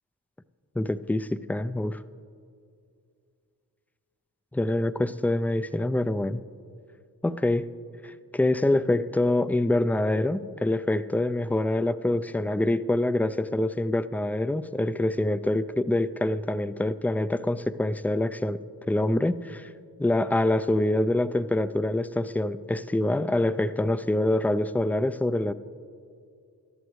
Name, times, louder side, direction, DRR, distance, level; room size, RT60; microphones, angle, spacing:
voice 1, 0.8-2.0 4.5-6.4 7.2-7.7 8.0-18.6 18.9-19.7 20.0-25.5, left 1 dB, 5° left, 13 dB, 0.3 m, -25 dB
19.5 x 13.0 x 3.2 m, 2.4 s
cardioid pair, 45°, 40 cm